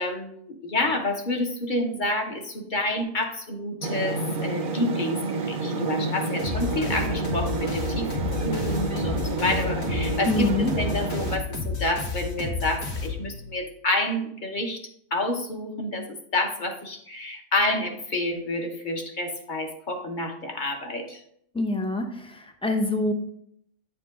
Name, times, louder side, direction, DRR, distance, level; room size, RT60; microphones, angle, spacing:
voice 1, 0.0-10.5 10.8-14.8 15.1-21.2, left 1 dB, 35° left, 3 dB, 1.0 m, -29 dB
sound 1, 3.8-11.4, right 3 dB, 45° right, 0.7 m, -29 dB
sound 2, 6.4-13.6, left 4 dB, 85° left, 1.8 m, -31 dB
voice 2, 10.2-10.7 21.5-23.1, left 2 dB, 10° left, 3 dB, 0.3 m, -25 dB
9.3 x 4.5 x 3.6 m, 0.68 s
omnidirectional pair, 1.6 m